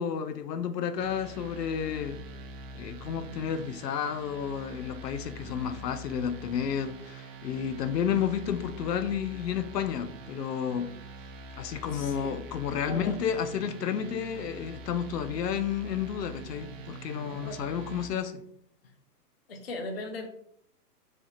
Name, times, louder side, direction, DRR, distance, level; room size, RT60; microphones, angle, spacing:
voice 1, 0.0-2.2 2.7-10.9 11.6-18.4, left 8 dB, 85° left, 0.6 m, -31 dB
sound 1, 1.0-18.1, right 2 dB, 55° right, 0.5 m, -45 dB
voice 2, 11.9-12.4 12.9-13.2 17.2-17.7 19.5-20.3, left 2 dB, 40° left, 0.4 m, -38 dB
3.4 x 2.4 x 4.0 m
hypercardioid pair, 175°, 47 cm